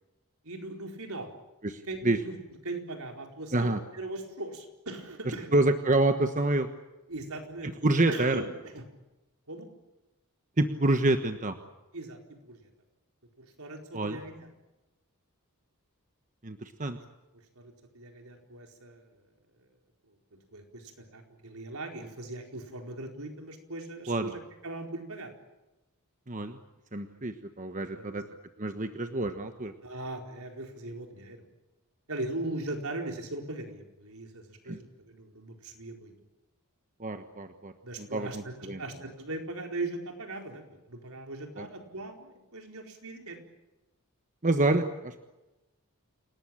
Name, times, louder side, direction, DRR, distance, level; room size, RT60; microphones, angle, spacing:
voice 1, 0.4-1.3 1.8-2.3 2.6-5.5 7.1-7.7 8.1-8.8 9.5-9.7 11.9-12.7 13.4-14.5 17.6-19.2 20.1-20.2 20.5-25.3 27.8-28.2 28.6-28.7 29.8-31.5 32.1-36.1 37.8-43.4, right 2 dB, 75° right, 3 dB, 4.5 m, -39 dB
voice 2, 1.6-2.2 3.5-3.8 5.5-6.7 7.6-8.4 10.6-11.6 13.9-14.2 16.4-17.0 24.1-24.3 26.3-26.6 26.9-28.2 28.6-29.7 34.7-34.8 37.0-37.7 38.0-38.8 41.6-41.7 44.4-45.2, right 2 dB, 35° right, 7 dB, 1.2 m, -27 dB
28.5 x 19.0 x 8.9 m, 1.0 s
head